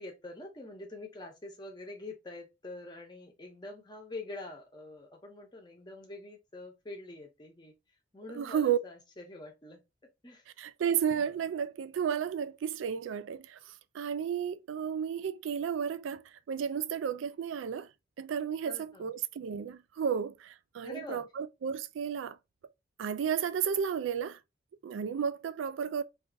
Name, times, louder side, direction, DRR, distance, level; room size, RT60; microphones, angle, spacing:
voice 1, 0.0-7.7 8.1-9.8 10.2-10.4 18.6-19.1 20.8-21.2, left 2 dB, 20° left, 0.7 m, -45 dB
voice 2, 8.3-8.8 10.6-17.9 18.2-22.4 23.0-24.4 24.8-26.0, right 8 dB, 75° right, 0.3 m, -33 dB
2.6 x 2.4 x 3.7 m
head